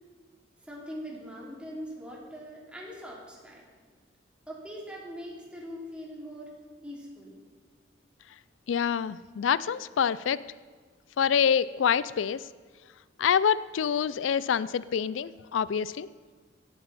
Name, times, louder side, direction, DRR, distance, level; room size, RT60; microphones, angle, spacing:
voice 1, 0.6-3.7 4.5-6.5 6.8-7.4, equal, 5° right, -4 dB, 3.3 m, -42 dB
voice 2, 8.7-10.4 11.2-12.4 13.2-16.1, left 7 dB, 85° left, 18 dB, 0.4 m, -26 dB
17.5 x 11.5 x 4.2 m, 1.5 s
head